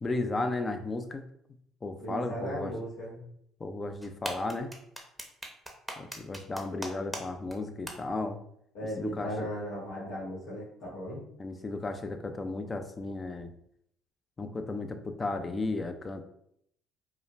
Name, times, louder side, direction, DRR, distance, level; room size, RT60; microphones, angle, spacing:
voice 1, 0.0-1.2 1.8-2.7 3.6-4.7 6.0-8.4 9.0-9.5 11.4-13.5 14.4-16.2, left 2 dB, 30° left, 7 dB, 0.5 m, -34 dB
voice 2, 2.0-3.3 8.7-11.2, equal, 70° left, -7 dB, 1.3 m, -37 dB
sound 1, 4.0-7.2 7.5-7.6 7.9-8.0, right 1 dB, 5° right, 0.8 m, -38 dB
4.9 x 2.1 x 2.5 m, 0.71 s
hypercardioid pair, 60°, 0 cm